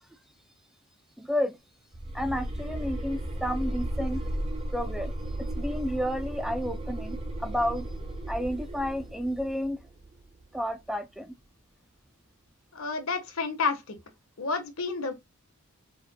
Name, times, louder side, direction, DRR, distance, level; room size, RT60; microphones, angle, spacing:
voice 1, 1.2-1.6 2.1-4.2 4.7-5.1 5.4-7.9 8.3-9.8 10.5-11.3, equal, ahead, 0.4 m, -31 dB
sound 1, 1.9-10.8, right 1 dB, 30° right, 1.1 m, -35 dB
voice 2, 12.7-14.0 14.4-15.1, left 4 dB, 65° left, 1.3 m, -30 dB
5.1 x 4.6 x 2.2 m
head